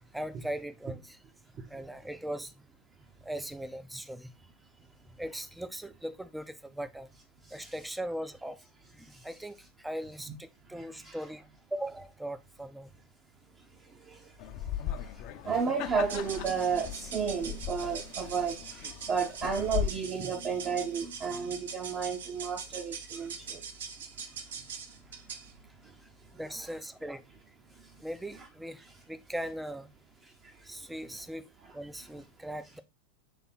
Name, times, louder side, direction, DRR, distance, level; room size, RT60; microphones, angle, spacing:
voice 1, 0.1-1.2 1.7-2.5 3.2-4.3 5.2-7.1 7.5-8.6 8.9-12.9 23.2-23.3 26.4-27.2 28.0-29.9 30.6-32.8, right 1 dB, 5° right, 0.5 m, -39 dB
voice 2, 10.7-11.2 13.8-14.3 15.0-15.1 15.4-23.6 25.8-25.9 27.8-27.9 30.4-30.6, right 6 dB, 30° right, 0.9 m, -33 dB
sound 1, 14.4-19.9, left 10 dB, 40° left, 0.6 m, -38 dB
sound 2, 16.1-25.5, right 6 dB, 60° right, 1.0 m, -43 dB
7.1 x 3.6 x 4.1 m
figure-of-eight pair, 90°, 0 cm